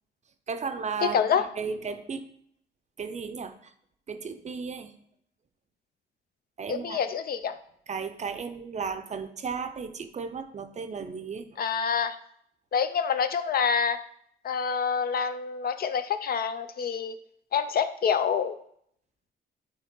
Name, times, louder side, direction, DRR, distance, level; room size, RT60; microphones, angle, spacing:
voice 1, 0.5-2.3 3.0-3.5 4.1-4.9 6.6-7.0 7.9-11.5, right 5 dB, 35° right, 9 dB, 0.6 m, -34 dB
voice 2, 1.0-1.4 6.7-7.5 11.6-12.2 12.7-14.0 14.4-17.2 17.5-18.6, left 7 dB, 50° left, 10 dB, 0.5 m, -27 dB
8.2 x 3.1 x 3.7 m, 0.68 s
cardioid pair, 90°, 20 cm